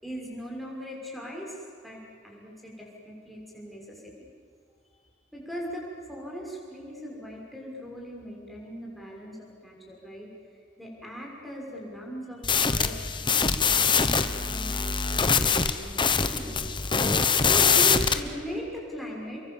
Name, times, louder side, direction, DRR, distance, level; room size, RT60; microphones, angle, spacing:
voice 1, 0.0-4.1 5.3-10.3 10.8-12.9 13.2-16.6 17.4-19.4, equal, ahead, -3 dB, 6.3 m, -39 dB
sound 1, 12.4-18.2, left 5 dB, 25° left, 1.2 m, -23 dB
30.0 x 23.5 x 7.4 m, 2.3 s
head